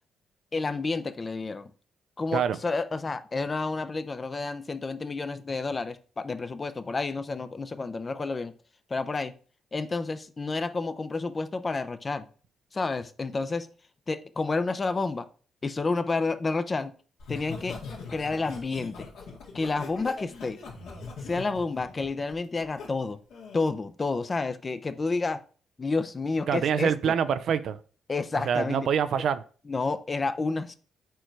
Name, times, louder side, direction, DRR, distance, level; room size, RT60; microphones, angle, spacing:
voice 1, 0.5-1.7 2.2-8.5 8.9-9.3 9.7-12.3 12.7-13.7 14.1-15.3 15.6-16.9 17.3-17.8 18.1-19.0 19.5-20.6 21.2-23.2 23.5-25.4 25.8-27.2 28.1-28.9 29.7-30.7, left 3 dB, 30° left, 0.6 m, -30 dB
Laughter, 17.2-22.9 23.3-23.6, left 4 dB, 75° left, 1.9 m, -41 dB
voice 2, 26.5-27.8 28.5-29.4, right 7 dB, 65° right, 0.4 m, -25 dB
4.5 x 4.4 x 4.6 m
cardioid pair, 90°, 0 cm